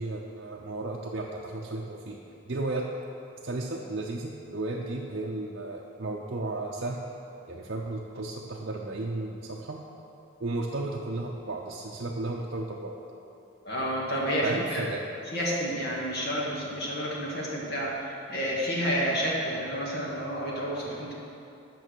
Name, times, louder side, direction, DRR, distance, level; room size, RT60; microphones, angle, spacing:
voice 1, 0.0-2.2 2.5-2.9 3.4-7.0 7.5-9.8 10.4-13.0 14.4-15.1, right 2 dB, 55° right, -3 dB, 0.6 m, -34 dB
voice 2, 13.6-14.8 15.3-21.1, equal, 50° left, -5 dB, 1.9 m, -30 dB
9.0 x 6.2 x 6.2 m, 2.8 s
head